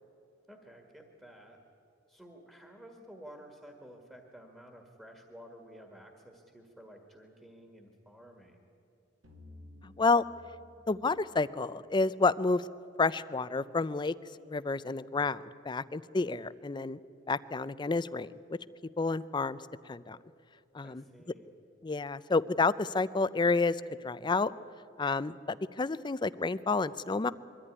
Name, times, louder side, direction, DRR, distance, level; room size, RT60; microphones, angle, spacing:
voice 1, 0.5-1.6 2.1-8.7 20.8-21.5, equal, 5° right, 2 dB, 1.7 m, -52 dB
sound 1, 9.2-12.2, left 1 dB, 70° right, 2.7 m, -55 dB
voice 2, 9.8-10.2 10.9-12.7 13.0-14.1 14.5-17.0 17.3-18.6 19.0-19.6 19.8-20.2 20.7-21.0 21.8-24.5 25.0-27.3, left 3 dB, 25° left, 16 dB, 0.4 m, -30 dB
22.5 x 14.0 x 9.8 m, 2.7 s
head